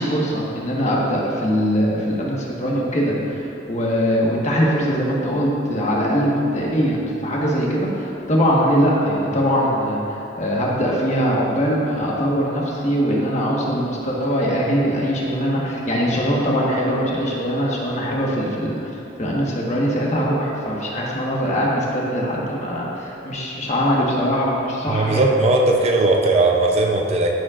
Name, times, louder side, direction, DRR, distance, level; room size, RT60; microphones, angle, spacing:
voice 1, 0.0-18.8 19.2-25.3, equal, 35° left, -4 dB, 1.4 m, -21 dB
voice 2, 24.9-27.3, right 2 dB, 35° right, 1 dB, 0.6 m, -18 dB
14.0 x 7.3 x 2.5 m, 2.8 s
head